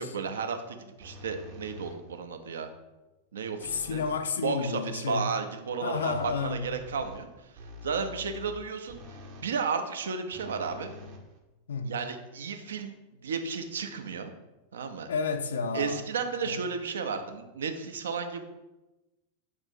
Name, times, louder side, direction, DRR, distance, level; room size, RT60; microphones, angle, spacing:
voice 1, 0.0-2.7 3.3-4.0 4.4-7.3 7.8-9.0 9.4-10.9 11.8-12.9 13.2-14.3 14.7-15.1 15.7-18.5, right 5 dB, 65° right, 0.4 m, -33 dB
sound 1, 1.0-2.2 3.6-4.3 5.9-9.5 10.3-11.8, left 1 dB, 45° right, 0.7 m, -46 dB
voice 2, 3.8-5.3 5.8-6.6 11.7-11.9 15.1-16.0, left 5 dB, 65° left, 0.3 m, -31 dB
3.7 x 2.5 x 4.2 m
figure-of-eight pair, 90°, 0 cm